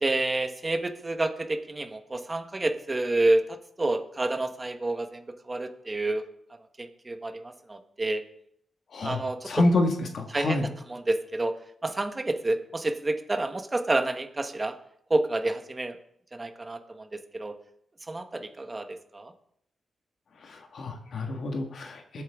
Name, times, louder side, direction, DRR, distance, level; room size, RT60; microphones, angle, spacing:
voice 1, 0.0-6.3 6.8-8.3 9.0-9.5 10.3-11.5 11.8-14.8 15.1-16.0 16.3-17.6 18.1-19.3, right 2 dB, 25° right, 6 dB, 1.3 m, -29 dB
voice 2, 8.9-10.7 20.4-22.2, left 2 dB, 60° left, 3 dB, 1.8 m, -28 dB
20.5 x 8.6 x 3.7 m, 0.72 s
wide cardioid pair, 110°, 0 cm